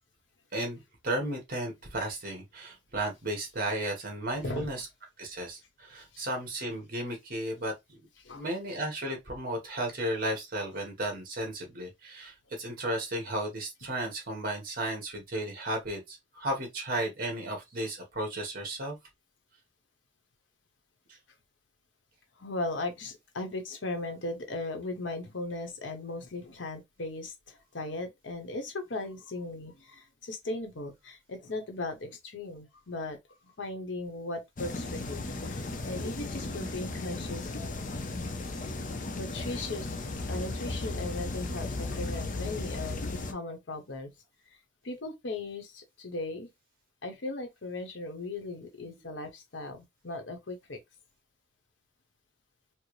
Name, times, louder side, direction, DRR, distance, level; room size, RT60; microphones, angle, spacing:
voice 1, 0.5-4.9 5.2-8.0 8.3-19.0, right 1 dB, 50° right, 1.5 m, -34 dB
voice 2, 4.4-4.7 6.1-6.2 8.2-8.5 22.4-33.2 33.4-37.8 39.1-39.9 40.3-44.1 44.8-46.5 47.0-50.8, left 2 dB, 85° left, 1.0 m, -38 dB
sound 1, 34.6-43.3, left 2 dB, 45° left, 0.6 m, -35 dB
4.5 x 2.1 x 3.1 m
head